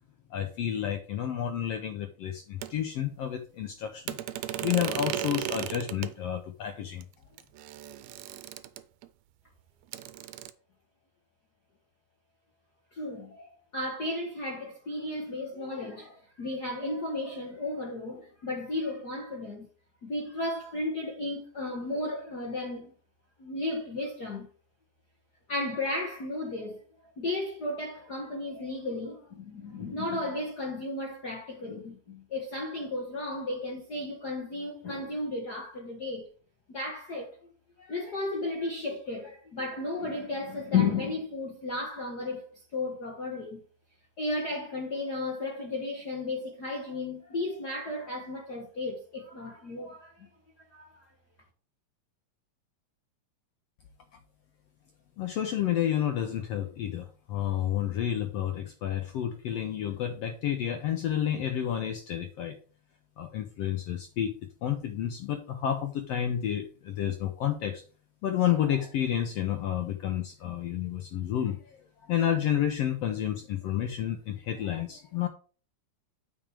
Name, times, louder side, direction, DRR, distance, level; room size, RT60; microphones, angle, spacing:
voice 1, 0.3-4.2 4.6-7.0 55.2-62.6 63.2-64.3 64.6-67.8 68.2-71.8 72.1-75.3, left 10 dB, 75° left, 1.6 m, -30 dB
sound 1, 2.6-2.7 4.1-6.1 7.0-7.1 7.4-9.1 9.9-10.5, right 12 dB, 75° right, 1.8 m, -36 dB
voice 2, 12.9-19.7 20.0-22.9 23.4-24.5 25.5-26.8 27.2-36.3 36.7-37.4 37.8-43.6 44.2-50.3 50.7-51.1, left 2 dB, 50° left, 1.3 m, -34 dB
9.0 x 5.1 x 4.8 m
omnidirectional pair, 3.4 m